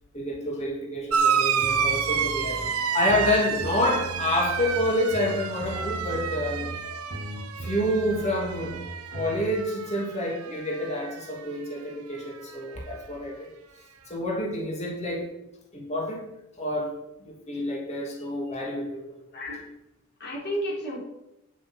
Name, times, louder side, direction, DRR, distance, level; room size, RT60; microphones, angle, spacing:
voice 1, 0.1-2.6 2.9-6.7 7.6-8.8 9.1-13.5 14.1-15.3 15.7-16.2 16.6-16.9 17.2-19.0, left 1 dB, 30° left, -1 dB, 3.0 m, -28 dB
sound 1, 1.1-10.1 10.4-11.2 12.3-12.4, right 7 dB, 80° right, 0.9 m, -29 dB
sound 2, 1.6-9.5, right 1 dB, 50° right, 1.4 m, -38 dB
voice 2, 19.3-19.7 20.2-21.0, equal, 50° left, -5 dB, 5.0 m, -32 dB
10.0 x 8.1 x 6.4 m, 0.88 s
head